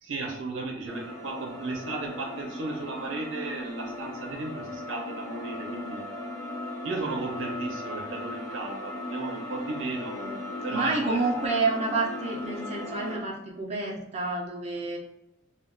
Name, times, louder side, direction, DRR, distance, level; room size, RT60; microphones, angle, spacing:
voice 1, 0.0-6.1 6.8-10.2 10.6-11.2, right 3 dB, 90° right, 1 dB, 0.5 m, -35 dB
sound 1, 0.9-13.2, left 2 dB, 15° left, 0.7 m, -37 dB
voice 2, 10.1-10.4 10.7-15.0, right 3 dB, 35° right, -1 dB, 0.4 m, -29 dB
2.2 x 2.2 x 3.6 m, 0.87 s
head